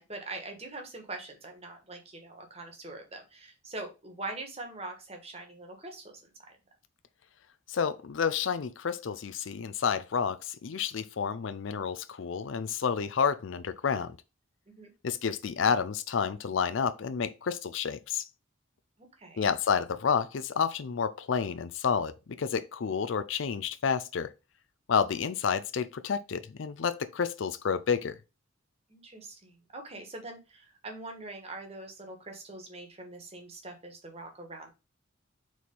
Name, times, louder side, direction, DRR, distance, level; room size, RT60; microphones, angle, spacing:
voice 1, 0.0-6.5 14.7-14.9 19.0-19.5 28.9-34.7, right 2 dB, 30° right, 1.4 m, -43 dB
voice 2, 7.7-14.2 15.0-18.3 19.4-24.3 24.9-28.2, left 6 dB, 70° left, 0.4 m, -30 dB
4.7 x 4.2 x 5.3 m
head